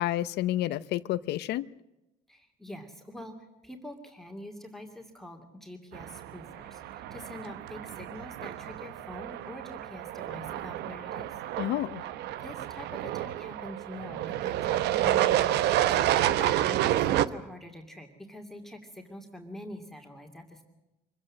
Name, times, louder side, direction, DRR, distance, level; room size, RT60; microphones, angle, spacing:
voice 1, 0.0-1.7 11.6-12.0, left 14 dB, 80° left, 15 dB, 0.7 m, -29 dB
voice 2, 2.3-3.3 3.6-11.4 12.4-16.0 16.4-20.6, left 1 dB, ahead, 2 dB, 2.6 m, -45 dB
sound 1, 5.9-17.3, right 13 dB, 80° right, 0.9 m, -29 dB
25.0 x 15.5 x 7.5 m, 0.97 s
cardioid pair, 110°, 17 cm